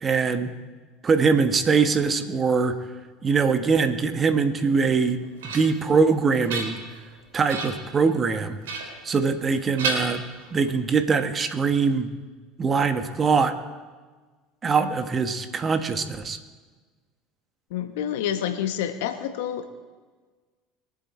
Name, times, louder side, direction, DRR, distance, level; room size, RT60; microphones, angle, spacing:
voice 1, 0.0-0.5 1.0-2.8 3.2-6.8 7.3-8.6 9.0-10.2 10.5-12.1 12.6-13.6 14.6-16.4, right 5 dB, 30° right, 9 dB, 1.4 m, -22 dB
sound 1, 4.9-5.9 6.3-7.1 7.5-7.9 8.6-9.5 9.8-10.7, right 3 dB, 85° right, 3.0 m, -32 dB
voice 2, 17.7-19.7, left 10 dB, 80° left, 8 dB, 1.3 m, -28 dB
23.0 x 7.8 x 4.4 m, 1.4 s
hypercardioid pair, 85°, 0 cm